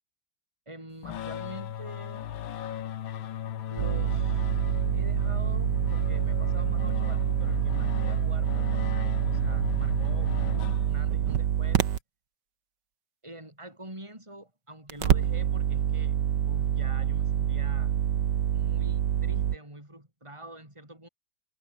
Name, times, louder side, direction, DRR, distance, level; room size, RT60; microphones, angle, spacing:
voice 1, 0.7-2.3 3.7-4.5 4.9-11.9 13.2-16.2 16.5-18.0 18.5-21.1, right 1 dB, 15° right, 6.9 m, -46 dB
sound 1, 1.0-11.3, left 10 dB, 90° left, 2.0 m, -36 dB
sound 2, 3.8-12.0 14.9-19.6, right 9 dB, 65° right, 1.8 m, -26 dB
omnidirectional pair, 2.1 m